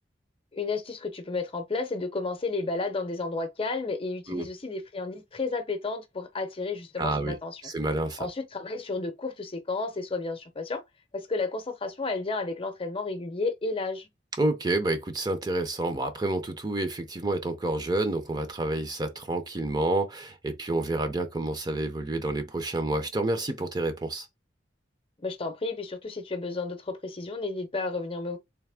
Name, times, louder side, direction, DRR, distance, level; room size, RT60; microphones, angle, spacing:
voice 1, 0.5-7.6 8.2-10.8 11.1-14.1 25.2-28.4, left 3 dB, 30° left, 0.7 m, -32 dB
voice 2, 7.0-7.4 7.6-8.3 14.4-24.3, right 2 dB, 25° right, 0.6 m, -29 dB
3.4 x 3.1 x 3.5 m
head